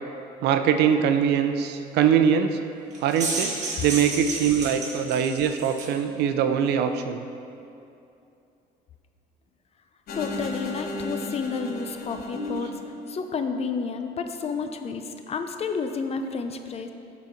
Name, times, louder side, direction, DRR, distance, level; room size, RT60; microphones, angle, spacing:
voice 1, 0.4-2.6 3.0-3.5 3.8-7.2, right 8 dB, 80° right, 8 dB, 0.6 m, -22 dB
sound 1, 2.9-6.0, right 3 dB, 45° right, 1.6 m, -32 dB
sound 2, 10.1-13.4, left 1 dB, 60° left, 1.0 m, -34 dB
voice 2, 10.1-16.9, left 5 dB, 35° left, 7 dB, 0.6 m, -31 dB
12.0 x 4.1 x 4.4 m, 2.6 s
cardioid pair, 110°, 17 cm